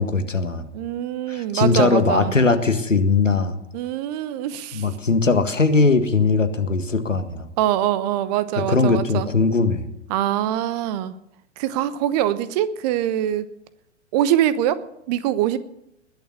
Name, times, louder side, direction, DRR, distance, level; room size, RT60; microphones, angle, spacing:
voice 1, 0.0-0.7 1.3-3.5 4.7-7.5 8.6-9.9, left 4 dB, 85° left, 9 dB, 1.8 m, -20 dB
voice 2, 0.7-2.3 3.7-4.9 7.6-9.3 10.1-11.1 11.6-13.5 14.1-14.8 15.1-15.6, right 11 dB, 35° right, 16 dB, 1.0 m, -23 dB
20.5 x 7.2 x 9.8 m, 0.81 s
figure-of-eight pair, 105°, 37 cm